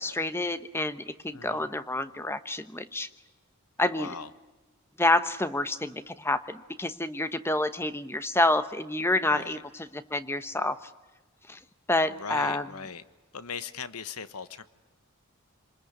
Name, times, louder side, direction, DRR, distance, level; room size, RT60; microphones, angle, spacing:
voice 1, 0.0-3.1 3.8-4.1 5.0-10.9 11.5-11.6 11.9-12.7, left 2 dB, 10° left, 12 dB, 1.0 m, -28 dB
voice 2, 1.3-1.7 3.8-4.3 9.3-9.6 12.2-13.0 13.3-14.6, left 6 dB, 85° left, 13 dB, 1.2 m, -39 dB
28.0 x 20.5 x 9.6 m, 1.2 s
head